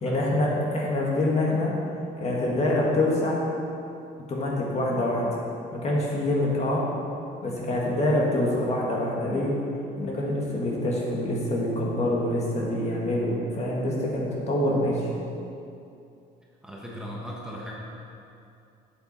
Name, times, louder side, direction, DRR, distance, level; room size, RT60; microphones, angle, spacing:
voice 1, 0.0-1.7 2.2-3.4 4.3-5.3 5.7-6.8 7.4-9.5 10.0-15.1, left 1 dB, 40° left, -3 dB, 2.0 m, -25 dB
voice 2, 16.6-17.7, equal, 5° right, -4 dB, 1.2 m, -38 dB
8.2 x 7.7 x 4.4 m, 2.6 s
cardioid pair, 110°, 17 cm